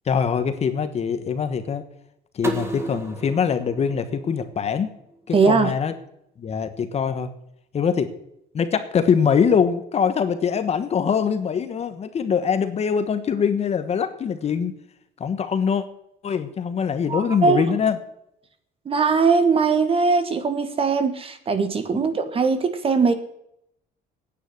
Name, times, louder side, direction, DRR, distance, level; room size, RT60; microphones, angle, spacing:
voice 1, 0.1-1.8 2.3-4.9 5.3-5.9 6.4-7.3 7.7-8.1 8.5-14.7 15.2-15.8 16.2-18.0 21.9-22.0, left 6 dB, 35° left, 10 dB, 1.2 m, -23 dB
sound 1, 2.4-5.2, right 1 dB, 15° right, 2.1 m, -33 dB
voice 2, 5.3-5.7 17.1-17.6 18.8-23.1, right 4 dB, 30° right, 10 dB, 1.5 m, -20 dB
10.0 x 9.4 x 9.8 m, 0.75 s
cardioid pair, 155°, 19 cm